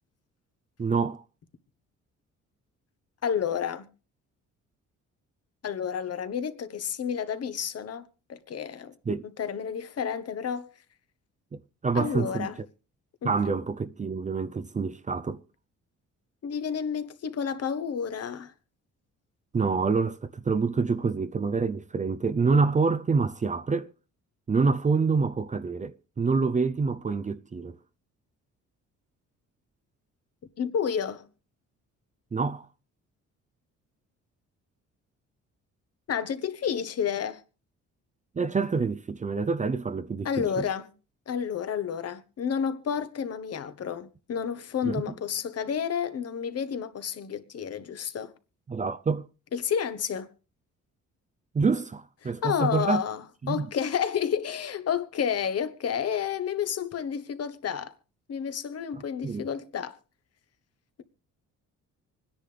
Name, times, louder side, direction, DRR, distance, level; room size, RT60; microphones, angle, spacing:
voice 1, 0.8-1.2 9.1-9.3 11.5-12.5 13.2-15.4 19.5-23.9 24.5-27.8 32.3-32.7 38.4-40.6 44.8-45.0 48.7-49.3 51.5-53.0 53.4-53.7 58.9-59.5, right 4 dB, 25° right, 0.6 m, -27 dB
voice 2, 3.2-3.8 5.6-8.9 9.2-10.7 11.9-12.6 13.2-13.6 16.4-18.5 30.6-31.2 36.1-37.4 40.2-40.9 41.3-48.3 49.5-50.3 52.4-57.9 58.3-60.0, left 7 dB, 55° left, 1.3 m, -30 dB
25.5 x 10.0 x 3.4 m
cardioid pair, 90°, 30 cm